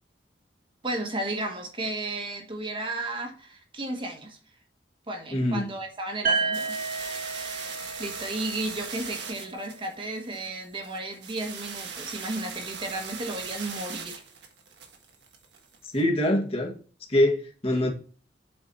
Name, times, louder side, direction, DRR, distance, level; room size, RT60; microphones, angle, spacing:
voice 1, 0.8-4.4 5.1-6.8 7.5-14.2, right 2 dB, 30° right, 1.4 m, -34 dB
voice 2, 5.3-5.7 15.9-16.7 17.1-17.9, left 1 dB, 35° left, 1.7 m, -24 dB
sound 1, 6.2-10.1, right 4 dB, 50° right, 1.5 m, -32 dB
sound 2, 6.5-16.0, right 6 dB, 70° right, 1.4 m, -40 dB
7.9 x 4.7 x 4.2 m
head